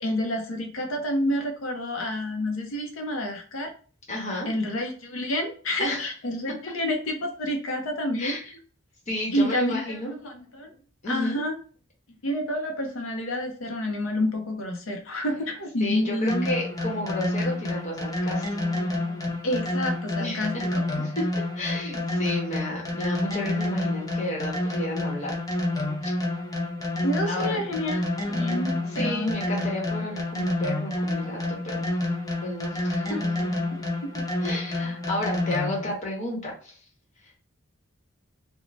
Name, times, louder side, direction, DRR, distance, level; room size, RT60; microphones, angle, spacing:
voice 1, 0.0-3.7 4.5-8.3 9.3-9.8 10.2-10.7 11.1-11.5 12.2-16.5 19.4-20.8 27.0-29.3 33.7-34.2, left 1 dB, 70° left, 3 dB, 0.6 m, -29 dB
voice 2, 4.1-4.5 5.8-6.1 8.2-8.4 9.1-10.1 11.0-11.4 15.8-18.8 20.2-20.6 21.0-21.3 21.5-25.4 26.0-26.1 27.3-27.6 28.9-31.8 32.4-33.2 34.4-36.8, left 1 dB, 35° left, -2 dB, 1.0 m, -32 dB
sound 1, 16.3-35.9, left 1 dB, 20° left, 0.5 m, -29 dB
2.5 x 2.1 x 3.1 m, 0.40 s
head